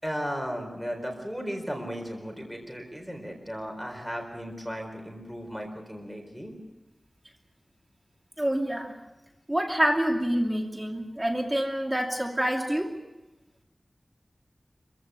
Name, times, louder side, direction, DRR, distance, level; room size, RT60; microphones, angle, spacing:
voice 1, 0.0-6.5, equal, ahead, 3 dB, 4.4 m, -35 dB
voice 2, 8.4-8.9 9.5-12.9, equal, 20° right, 1 dB, 2.6 m, -27 dB
26.5 x 16.0 x 8.3 m, 1.0 s
wide cardioid pair, 75°, 0 cm